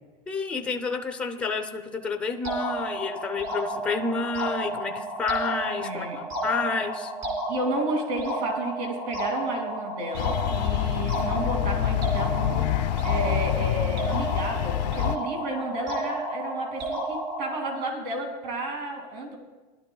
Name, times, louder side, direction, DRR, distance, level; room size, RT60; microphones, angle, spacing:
voice 1, 0.3-6.1 6.4-7.1, left 4 dB, 5° left, 5 dB, 0.5 m, -29 dB
sound 1, 2.4-17.8, right 1 dB, 30° right, 4.3 m, -32 dB
voice 2, 5.8-6.2 7.5-19.4, right 2 dB, 75° right, 3 dB, 2.4 m, -32 dB
sound 2, 10.1-15.2, left 14 dB, 90° left, 0.4 m, -26 dB
19.5 x 12.0 x 2.3 m, 1.2 s
supercardioid pair, 165°, 21 cm